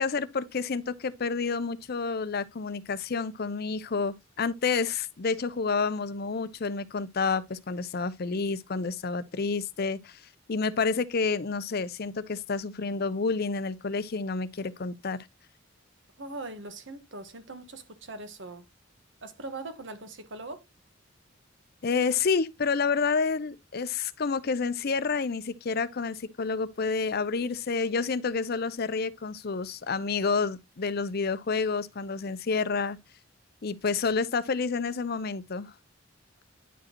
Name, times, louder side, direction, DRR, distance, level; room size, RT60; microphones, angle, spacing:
voice 1, 0.0-10.2 10.5-15.2 21.8-33.0 33.6-35.7, left 4 dB, 50° left, 0.6 m, -29 dB
voice 2, 16.2-18.6 19.2-20.6, right 2 dB, 65° right, 1.4 m, -41 dB
9.9 x 4.9 x 2.9 m
head